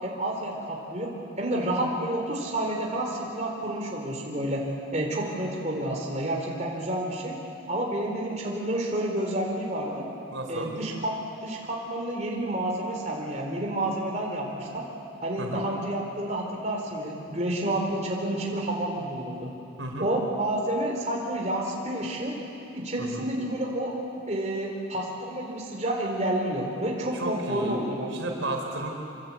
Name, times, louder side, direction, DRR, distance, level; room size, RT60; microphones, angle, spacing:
voice 1, 0.0-1.1 1.4-4.6 4.9-7.4 7.7-10.1 10.5-11.1 11.4-14.8 15.2-19.5 20.0-22.3 22.7-23.9 24.3-28.2, right 1 dB, 35° right, -1 dB, 4.1 m, -29 dB
voice 2, 10.3-10.8 15.4-15.6 19.8-20.1 23.0-23.3 27.1-27.8 28.1-28.9, right 2 dB, 75° right, 1 dB, 4.5 m, -33 dB
26.0 x 26.0 x 8.6 m, 2.8 s
head